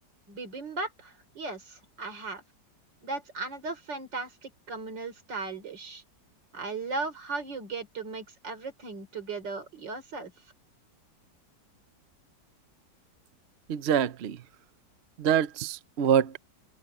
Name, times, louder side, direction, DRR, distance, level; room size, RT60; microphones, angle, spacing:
voice 1, 0.3-2.4 3.0-6.0 6.5-10.3, right 3 dB, 75° right, 4.3 m, -37 dB
voice 2, 13.7-14.4 15.2-16.4, right 9 dB, 60° right, 0.7 m, -25 dB
omnidirectional pair, 1.9 m